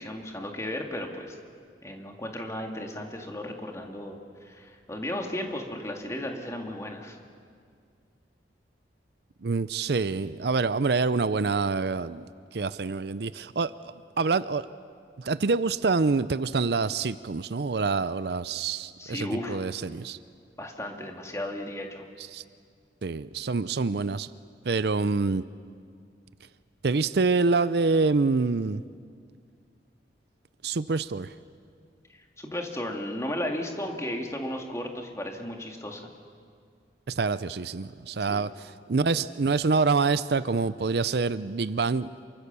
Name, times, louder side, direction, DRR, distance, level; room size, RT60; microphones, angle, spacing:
voice 1, 0.0-1.4 1.8-7.2 19.0-19.6 20.6-22.0 32.4-36.0 38.3-38.4, left 1 dB, 15° left, 2 dB, 2.3 m, -35 dB
voice 2, 9.4-12.2 12.5-14.7 15.2-20.2 22.2-22.4 23.0-24.3 24.6-25.4 26.8-28.8 30.6-31.3 37.1-42.1, right 4 dB, 60° right, 15 dB, 0.5 m, -26 dB
27.5 x 24.5 x 6.9 m, 2.2 s
head